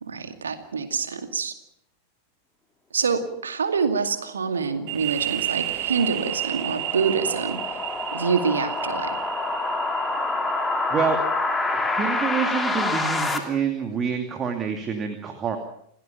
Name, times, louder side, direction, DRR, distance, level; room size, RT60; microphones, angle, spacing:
voice 1, 0.0-1.5 2.9-7.8 8.1-9.2, right 5 dB, 70° right, 7 dB, 2.3 m, -26 dB
sound 1, 4.7-13.4, left 3 dB, 10° left, 3.0 m, -27 dB
sound 2, 4.9-12.3, right 15 dB, 45° right, 2.1 m, -33 dB
voice 2, 12.0-15.6, right 6 dB, 25° right, 5 dB, 2.6 m, -27 dB
28.5 x 17.5 x 5.9 m, 0.71 s
figure-of-eight pair, 90°, 0 cm